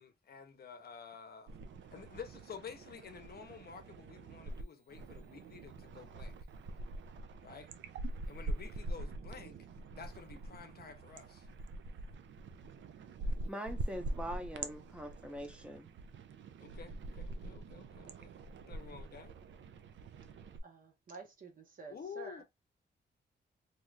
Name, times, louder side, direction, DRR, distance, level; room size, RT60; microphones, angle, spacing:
voice 1, 0.0-1.5 1.9-6.4 7.4-7.7 8.3-9.6 10.0-11.5 16.6-18.4 18.7-19.3 21.9-22.4, left 6 dB, 55° left, 0.7 m, -50 dB
sound 1, 1.5-4.6 4.9-20.6, right 2 dB, 80° right, 0.5 m, -44 dB
voice 2, 13.5-15.9, equal, 5° right, 0.7 m, -43 dB
voice 3, 20.6-22.4, right 3 dB, 45° right, 1.0 m, -51 dB
2.7 x 2.4 x 3.1 m
wide cardioid pair, 125°, 19 cm